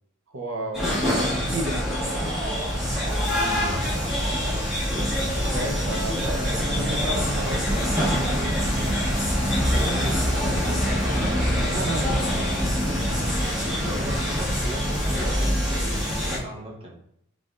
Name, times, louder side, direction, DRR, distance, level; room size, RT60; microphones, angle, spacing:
voice 1, 0.3-1.2 1.5-2.4 5.3-7.9 11.5-12.3, right 1 dB, 75° right, 2 dB, 0.7 m, -33 dB
sound 1, 0.7-16.4, equal, 5° right, 1.3 m, -24 dB
voice 2, 2.8-4.1 6.3-7.8 9.8-11.2 13.7-17.0, equal, 25° right, -1 dB, 0.8 m, -37 dB
5.2 x 3.4 x 2.5 m, 0.73 s
head